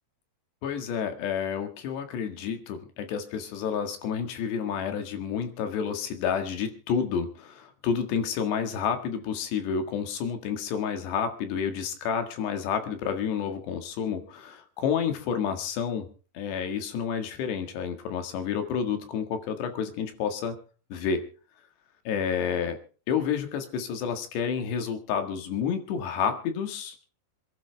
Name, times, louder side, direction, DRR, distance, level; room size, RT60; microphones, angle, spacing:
voice 1, 0.6-16.1 16.4-20.6 20.9-21.2 22.1-22.8 23.1-27.0, left 7 dB, 85° left, 7 dB, 4.0 m, -30 dB
27.0 x 11.5 x 3.4 m, 0.38 s
omnidirectional pair, 4.8 m